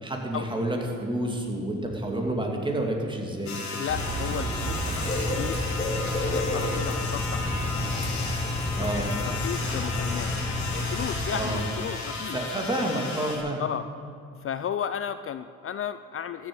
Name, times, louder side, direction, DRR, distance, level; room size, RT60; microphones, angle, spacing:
voice 1, 0.0-3.6 8.8-9.1 11.3-11.6 12.3-13.6, right 1 dB, 15° right, 1 dB, 2.6 m, -29 dB
sound 1, 3.5-13.4, left 3 dB, 70° left, 3.0 m, -35 dB
voice 2, 3.7-5.6 6.0-7.6 8.8-10.3 10.7-12.4 13.6-13.9 14.4-16.5, left 9 dB, 45° left, 12 dB, 0.5 m, -34 dB
Bird / Rain, 3.9-12.0, left 1 dB, 20° left, 2.6 m, -30 dB
14.0 x 7.5 x 8.8 m, 2.3 s
cardioid pair, 90°, 30 cm